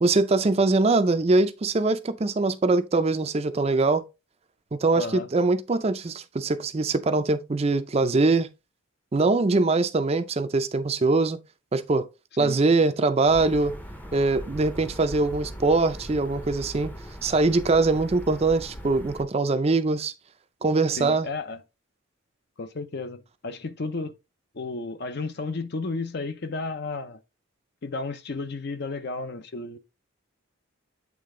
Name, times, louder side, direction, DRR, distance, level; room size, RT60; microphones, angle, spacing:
voice 1, 0.0-4.0 4.7-8.5 9.1-11.4 11.7-12.1 12.4-13.7 14.1-16.9 17.2-20.1 20.6-21.3, right 3 dB, 30° right, 0.4 m, -22 dB
voice 2, 5.0-5.3 12.4-12.6 21.0-21.6 22.6-24.2 24.5-27.2 27.8-29.8, left 3 dB, 50° left, 0.6 m, -33 dB
sound 1, 13.3-19.2, equal, 10° left, 0.6 m, -39 dB
8.4 x 3.4 x 3.7 m
head